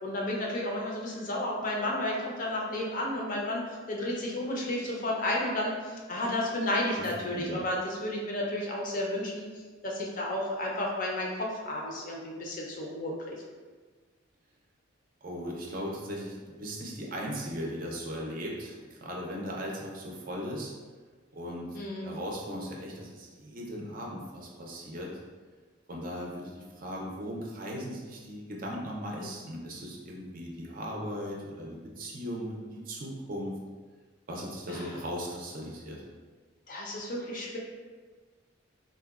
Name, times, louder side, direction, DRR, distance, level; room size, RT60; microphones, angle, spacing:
voice 1, 0.0-9.5 9.8-13.4 21.7-22.1 34.7-34.9 36.7-37.6, left 1 dB, 40° left, -2 dB, 0.5 m, -32 dB
voice 2, 15.2-20.7 21.3-25.1 25.9-33.6 34.3-36.0, equal, 45° right, -2 dB, 0.5 m, -38 dB
3.7 x 2.1 x 2.3 m, 1.4 s
head